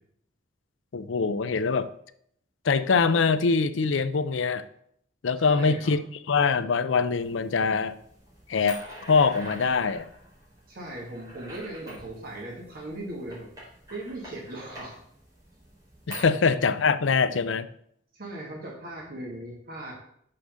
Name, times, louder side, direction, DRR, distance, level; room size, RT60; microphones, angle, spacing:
voice 1, 0.9-1.9 2.6-4.6 5.2-6.0 6.3-7.9 8.5-8.8 9.1-10.1 16.1-17.7, left 5 dB, 80° left, 13 dB, 0.5 m, -23 dB
voice 2, 5.4-5.9 10.7-13.5 13.9-15.0 18.1-19.9, right 1 dB, 50° right, -2 dB, 2.2 m, -38 dB
sound 1, 7.1-16.2, equal, 20° right, 4.1 m, -46 dB
6.4 x 5.8 x 6.4 m, 0.68 s
head